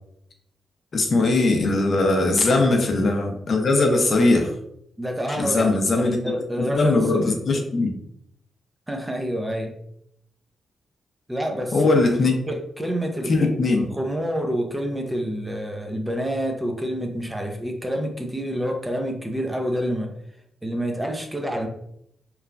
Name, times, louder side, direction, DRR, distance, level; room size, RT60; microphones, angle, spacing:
voice 1, 0.9-4.5 5.4-6.2 6.6-7.9 11.7-12.4 13.3-13.9, left 2 dB, 50° left, 3 dB, 0.6 m, -20 dB
voice 2, 5.0-7.4 8.9-9.7 11.3-11.9 12.5-20.1 20.6-21.7, equal, 10° right, 3 dB, 0.5 m, -28 dB
3.0 x 2.2 x 2.4 m, 0.73 s
cardioid pair, 80°, 0 cm